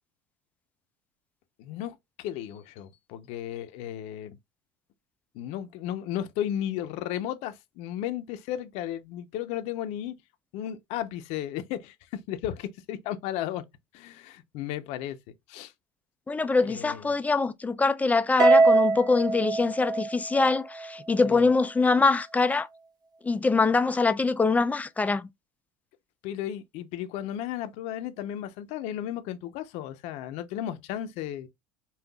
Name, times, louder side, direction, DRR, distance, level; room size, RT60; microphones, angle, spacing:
voice 1, 1.6-4.4 5.3-10.1 10.5-11.9 12.3-13.6 13.9-15.2 15.5-15.7 16.6-17.1 21.2-21.5 26.2-31.5, left 11 dB, 70° left, 0.8 m, -34 dB
voice 2, 16.3-22.7 23.2-25.3, left 3 dB, 15° left, 0.5 m, -24 dB
Harp, 18.4-20.9, right 3 dB, 35° right, 1.3 m, -22 dB
5.6 x 2.5 x 2.3 m
supercardioid pair, 115°, 12 cm